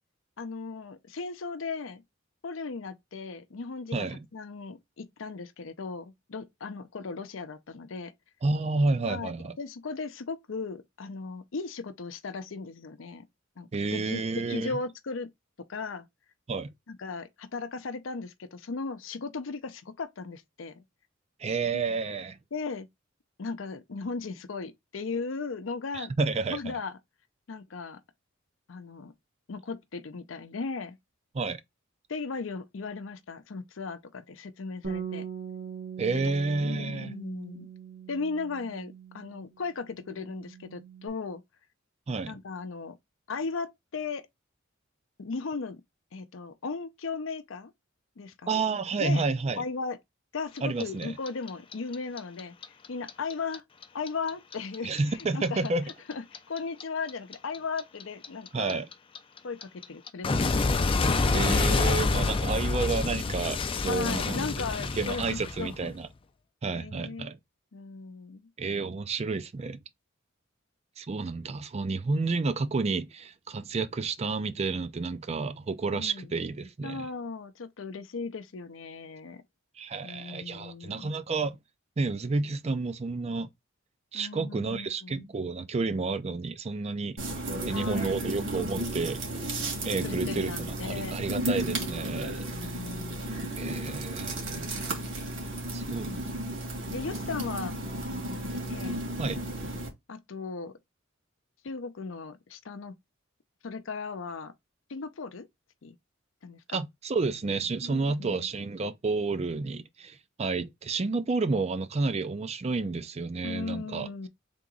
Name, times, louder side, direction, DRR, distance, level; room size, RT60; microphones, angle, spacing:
voice 1, 0.4-2.0 2.4-8.1 9.1-13.2 13.6-14.2 14.5-15.3 15.7-16.1 16.9-20.8 21.7-21.8 22.5-22.9 23.4-26.1 26.5-26.9 27.5-28.0 28.7-29.1 29.5-31.0 32.1-35.3 36.2-37.7 38.1-41.4 42.3-43.0 43.3-44.3 45.2-45.8 46.1-47.7 48.2-48.6 49.0-49.3 49.6-50.0 50.3-52.5 52.9-53.6 53.9-55.7 56.1-58.8 59.4-60.5 63.9-65.9 66.7-67.3 67.7-68.5 75.9-76.4 76.8-79.4 80.0-81.1 84.1-85.3 87.7-88.2 90.0-91.2 92.5-93.6 96.0-96.5 96.9-97.8 98.7-99.0 100.1-100.8 101.6-103.0 103.6-104.5 104.9-105.5 105.8-106.0 106.4-106.8 107.8-108.5 113.4-114.3, left 4 dB, 70° left, 0.6 m, -37 dB
voice 2, 3.9-4.2 8.4-9.5 13.7-14.7 16.5-16.7 21.4-22.4 25.9-26.8 31.3-31.6 36.0-37.1 42.1-42.3 48.5-49.6 50.6-51.1 54.8-55.9 58.5-58.9 61.3-64.7 65.0-66.1 66.6-67.4 68.6-69.8 71.0-77.1 79.8-81.6 82.0-83.5 84.1-87.2 87.7-89.6 89.8-92.4 93.6-94.7 95.7-96.1 99.2-99.4 106.7-114.3, right 3 dB, 30° right, 0.4 m, -30 dB
Bass guitar, 34.8-39.5 39.8-41.1, right 7 dB, 85° right, 1.4 m, -41 dB
Clock, 50.6-53.6 53.8-56.8 57.1-65.9, left 3 dB, 25° left, 0.4 m, -27 dB
sound 1, 87.2-99.9, right 1 dB, 65° right, 2.0 m, -33 dB
3.7 x 2.9 x 3.7 m
head